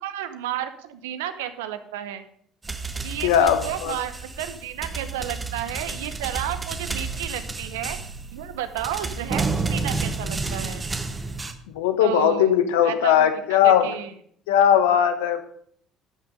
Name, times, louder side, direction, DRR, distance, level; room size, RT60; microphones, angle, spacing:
voice 1, 0.0-2.2 3.0-8.0 8.3-10.9 12.0-14.1, right 11 dB, 85° right, 11 dB, 0.8 m, -32 dB
sound 1, 2.6-11.5, right 3 dB, 25° right, 1.2 m, -31 dB
voice 2, 3.2-4.0 11.7-13.9 14.5-15.4, left 9 dB, 85° left, 9 dB, 1.0 m, -19 dB
12.0 x 6.1 x 5.2 m, 0.63 s
hypercardioid pair, 65°, 0 cm